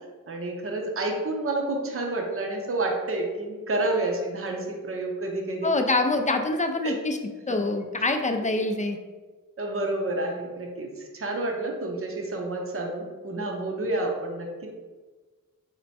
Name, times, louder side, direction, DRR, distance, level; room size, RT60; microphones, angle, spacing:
voice 1, 0.3-5.7 6.8-6.9 7.5-7.6 9.6-14.7, right 2 dB, 40° right, 1 dB, 0.6 m, -29 dB
voice 2, 5.6-7.2 7.5-9.0, left 2 dB, 25° left, 5 dB, 0.4 m, -25 dB
4.4 x 2.1 x 4.1 m, 1.3 s
wide cardioid pair, 70°, 34 cm